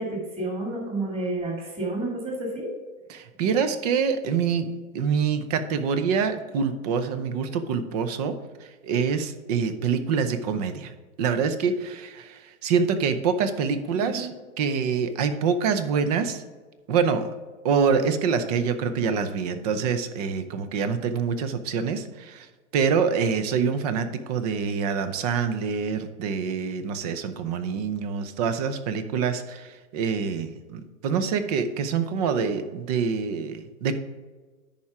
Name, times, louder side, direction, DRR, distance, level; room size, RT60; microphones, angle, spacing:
voice 1, 0.0-2.7 13.9-14.3, right 2 dB, 15° right, -2 dB, 2.1 m, -30 dB
voice 2, 3.1-8.3 8.6-10.9 11.2-14.3 14.6-16.4 16.9-17.3 17.6-22.5 22.7-33.9, right 6 dB, 30° right, 10 dB, 0.6 m, -26 dB
10.5 x 4.4 x 4.8 m, 1.3 s
hypercardioid pair, 150°, 43 cm